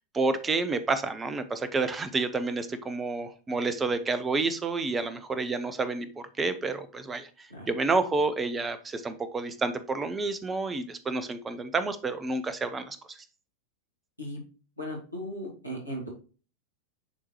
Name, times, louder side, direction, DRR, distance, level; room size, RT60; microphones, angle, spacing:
voice 1, 0.1-13.2, right 3 dB, 15° right, 12 dB, 0.7 m, -29 dB
voice 2, 14.8-16.1, equal, 90° left, -2 dB, 2.3 m, -37 dB
9.6 x 3.7 x 3.0 m, 0.37 s
figure-of-eight pair, 90°, 0 cm